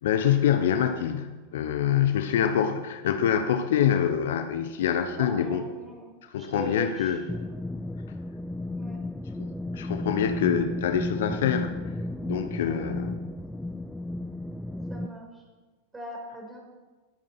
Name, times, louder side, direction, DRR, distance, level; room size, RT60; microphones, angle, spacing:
voice 1, 0.0-5.6 6.3-7.2 9.4-9.5 9.7-11.8 12.2-13.2, left 9 dB, 55° left, 8 dB, 1.1 m, -25 dB
voice 2, 5.0-6.1 6.4-7.2 8.7-9.0 12.7-12.9 14.9-15.4 15.9-16.6, right 1 dB, 10° right, 1 dB, 5.0 m, -40 dB
sound 1, 7.3-15.1, left 1 dB, 5° left, 0.6 m, -33 dB
20.5 x 9.0 x 5.9 m, 1.3 s
figure-of-eight pair, 90°, 0 cm